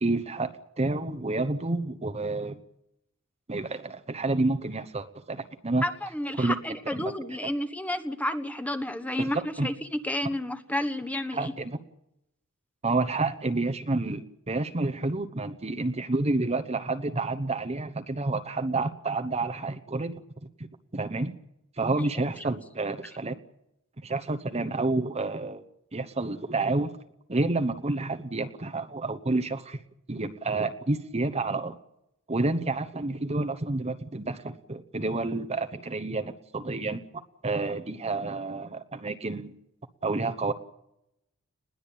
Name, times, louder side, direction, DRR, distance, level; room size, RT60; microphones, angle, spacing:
voice 1, 0.0-2.6 3.5-5.8 6.4-6.5 6.9-7.0 7.4-7.5 9.2-9.7 11.3-11.8 12.8-20.1 20.6-20.7 20.9-21.3 21.8-23.3 24.0-25.6 25.9-26.9 27.3-29.8 30.1-31.8 32.3-37.0 37.4-39.5 40.0-40.5, right 2 dB, 30° right, 9 dB, 1.0 m, -29 dB
voice 2, 5.8-11.5, left 1 dB, 5° left, 10 dB, 1.3 m, -31 dB
21.0 x 18.0 x 8.6 m, 0.79 s
head